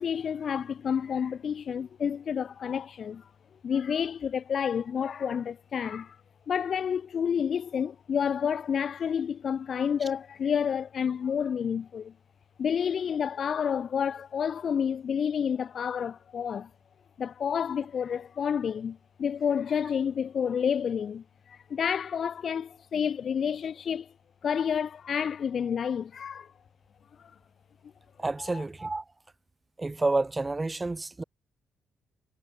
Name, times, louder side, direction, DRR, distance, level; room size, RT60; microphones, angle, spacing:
voice 1, 0.0-3.3 3.6-6.2 6.5-12.1 12.6-16.7 17.2-24.1 24.4-26.5 27.2-27.3 28.4-28.6, left 7 dB, 55° left, 5.1 m, -29 dB
voice 2, 28.2-29.0 29.8-31.2, right 2 dB, 20° right, 2.9 m, -29 dB
cardioid pair, 90°, 0 cm